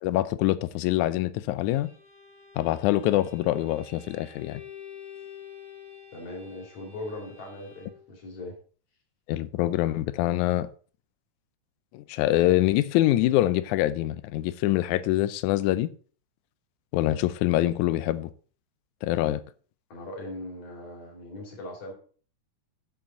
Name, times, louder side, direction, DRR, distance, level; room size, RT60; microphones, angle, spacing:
voice 1, 0.0-1.9 2.6-4.6 9.3-10.7 11.9-15.9 16.9-18.3 19.0-19.4, left 15 dB, 85° left, 2.0 m, -25 dB
Bowed string instrument, 1.6-8.1, left 8 dB, 40° left, 2.2 m, -48 dB
voice 2, 6.1-8.6 19.9-21.9, left 1 dB, 55° left, 3.6 m, -39 dB
8.6 x 7.5 x 4.0 m
omnidirectional pair, 3.4 m